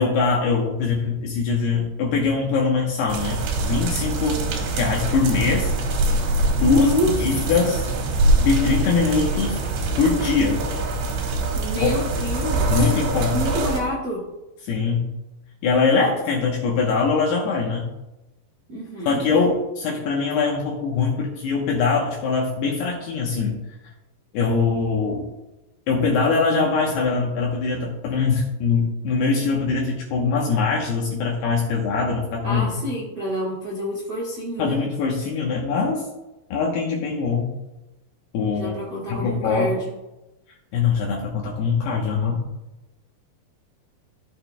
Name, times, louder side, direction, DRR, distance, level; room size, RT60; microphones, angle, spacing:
voice 1, 0.0-4.4 4.7-5.7 6.6-6.9 7.2-7.9 8.4-9.6 10.0-10.6 11.8-11.9 12.7-13.4 14.6-15.1 15.6-17.9 19.1-23.6 24.3-25.3 25.9-32.7 34.6-36.1 36.5-37.5 38.3-38.8 39.1-39.7 40.7-42.4, left 4 dB, 75° left, -2 dB, 2.7 m, -22 dB
sound 1, 3.1-13.8, right 2 dB, 90° right, 4.0 m, -24 dB
voice 2, 6.6-7.1 11.5-12.8 13.2-14.2 18.7-19.2 32.4-34.8 38.5-39.9, left 1 dB, 40° right, -7 dB, 1.9 m, -27 dB
15.0 x 6.5 x 2.2 m, 0.99 s
omnidirectional pair, 5.2 m